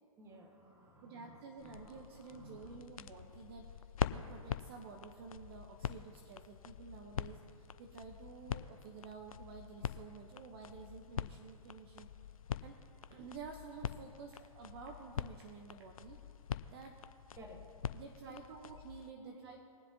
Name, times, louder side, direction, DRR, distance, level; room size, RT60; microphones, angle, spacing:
voice 1, 0.2-2.8 17.3-17.8 18.2-18.3 19.1-19.6, equal, 15° right, 1 dB, 1.7 m, -56 dB
voice 2, 1.0-12.1 12.6-12.8 13.1-16.2 16.7-17.0 17.9-19.6, right 5 dB, 45° right, 4 dB, 0.9 m, -51 dB
sound 1, 1.6-19.1, left 8 dB, 75° left, 0.5 m, -44 dB
21.5 x 7.6 x 2.9 m, 2.5 s
figure-of-eight pair, 120°, 18 cm